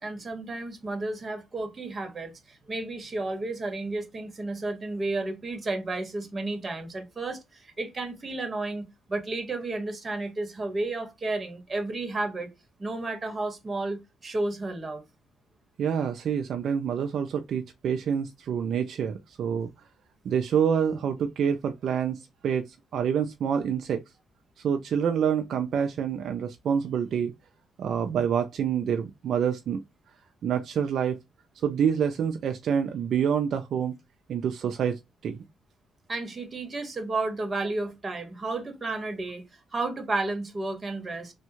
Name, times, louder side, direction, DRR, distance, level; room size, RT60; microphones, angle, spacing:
voice 1, 0.0-12.5 12.8-15.0 36.1-39.4 39.7-41.3, right 2 dB, 30° right, 1.2 m, -32 dB
voice 2, 15.8-19.7 20.2-24.0 24.6-27.3 27.8-29.8 30.4-31.2 31.6-33.9 34.3-35.4, right 7 dB, 65° right, 0.4 m, -27 dB
3.4 x 2.2 x 2.9 m
cardioid pair, 90°, 0 cm